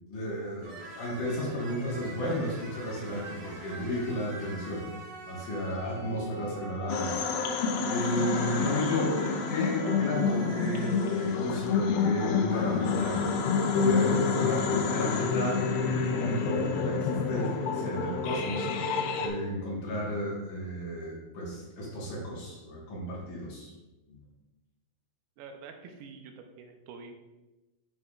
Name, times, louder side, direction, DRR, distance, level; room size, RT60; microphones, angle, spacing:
voice 1, 0.1-7.2 7.8-13.2 13.7-18.9 19.1-23.7 24.1-24.2, equal, 60° left, -4 dB, 2.7 m, -33 dB
sound 1, 0.6-11.8 12.2-13.3, right 1 dB, 60° right, 1.3 m, -44 dB
sound 2, 6.9-19.3, left 5 dB, 85° left, 2.4 m, -28 dB
voice 2, 25.4-27.1, right 5 dB, 85° right, 5 dB, 2.6 m, -47 dB
9.0 x 5.6 x 2.4 m, 1.1 s
omnidirectional pair, 4.3 m